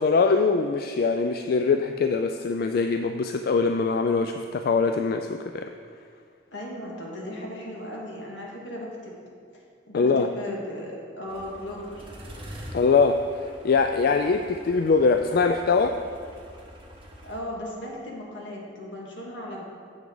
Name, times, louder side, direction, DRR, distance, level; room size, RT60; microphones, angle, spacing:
voice 1, 0.0-5.7 9.9-10.3 12.7-13.2 13.6-16.0, left 4 dB, 55° left, 6 dB, 0.3 m, -22 dB
voice 2, 6.5-9.2 9.5-12.0 14.3-14.4 17.2-19.6, left 1 dB, 75° left, -3 dB, 1.8 m, -37 dB
Diesel engine Startup and Stutdown, 11.3-17.4, equal, 30° right, 1.3 m, -45 dB
9.2 x 7.2 x 3.8 m, 2.2 s
head